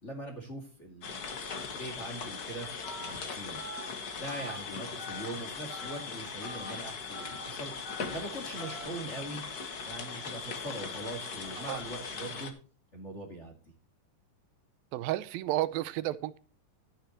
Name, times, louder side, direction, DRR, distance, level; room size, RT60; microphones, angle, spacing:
voice 1, 0.0-1.3 1.7-2.7 3.0-3.6 4.2-7.7 8.1-9.5 9.9-12.5 12.9-13.5, right 1 dB, 25° left, 2 dB, 2.1 m, -41 dB
sound 1, 1.0-12.5, left 5 dB, 80° left, 0.8 m, -40 dB
Telephone, 2.8-3.1 3.5-3.8 4.3-4.5 5.0-5.3 5.7-6.0 6.4-6.7 7.1-7.4 7.9-8.1 8.6-8.8, left 1 dB, 60° left, 6.9 m, -44 dB
voice 2, 14.9-16.4, right 14 dB, 90° right, 13 dB, 2.5 m, -32 dB
13.0 x 10.0 x 2.9 m, 0.37 s
omnidirectional pair, 4.1 m